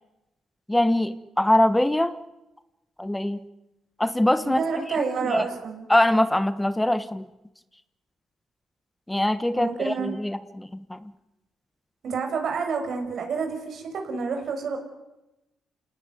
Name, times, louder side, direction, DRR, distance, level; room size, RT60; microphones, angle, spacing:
voice 1, 0.7-2.2 3.0-3.4 4.0-5.4 5.9-7.3 9.1-11.1, left 1 dB, 10° left, 13 dB, 1.3 m, -23 dB
voice 2, 4.4-5.8 9.5-10.1 12.0-14.8, right 5 dB, 60° right, 4 dB, 6.5 m, -29 dB
27.5 x 18.5 x 9.4 m, 0.95 s
cardioid pair, 90°, 0 cm